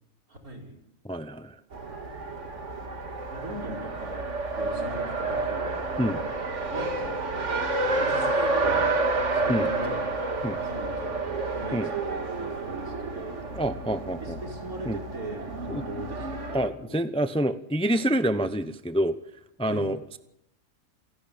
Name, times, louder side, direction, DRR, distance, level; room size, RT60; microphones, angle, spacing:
voice 1, 0.3-0.8 3.3-4.3 4.5-5.8 6.7-7.2 7.9-10.2 10.5-13.4 14.2-17.0 19.7-19.9, right 1 dB, 80° right, 0 dB, 5.3 m, -40 dB
voice 2, 1.0-1.6 6.0-6.2 9.5-9.7 10.4-10.6 11.7-11.9 13.5-14.4 14.9-15.0 15.7-15.8 16.5-19.2 19.6-20.2, right 1 dB, 5° left, 11 dB, 0.6 m, -27 dB
Race car auto racing, 1.7-16.7, right 3 dB, 55° right, 2.2 m, -30 dB
28.0 x 12.0 x 8.6 m, 0.84 s
omnidirectional pair, 1.5 m